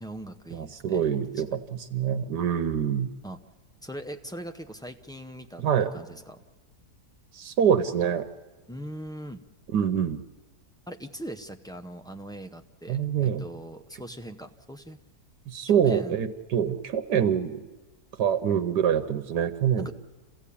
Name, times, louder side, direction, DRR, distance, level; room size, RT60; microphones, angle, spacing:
voice 1, 0.0-1.0 3.2-3.4 3.8-6.4 8.7-9.4 10.9-15.0 15.7-16.2 19.8-19.9, right 1 dB, 5° left, 6 dB, 0.4 m, -40 dB
voice 2, 0.5-3.1 5.6-5.9 7.3-8.2 9.7-10.2 12.9-13.4 15.5-17.6 18.2-19.9, right 8 dB, 80° right, 8 dB, 1.5 m, -25 dB
28.5 x 16.5 x 8.5 m, 1.3 s
omnidirectional pair, 1.8 m